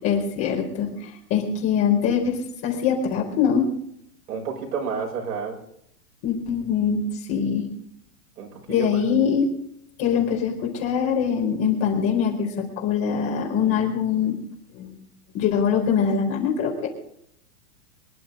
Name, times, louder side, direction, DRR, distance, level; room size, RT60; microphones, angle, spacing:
voice 1, 0.0-3.7 6.2-7.0 7.3-7.7 8.7-9.5 10.0-14.4 14.7-14.9 15.3-16.9, left 7 dB, 30° left, 0 dB, 4.3 m, -23 dB
voice 2, 4.3-5.6 8.4-9.0, right 6 dB, 80° right, 3 dB, 6.0 m, -30 dB
26.0 x 11.0 x 3.8 m, 0.69 s
supercardioid pair, 155°, 46 cm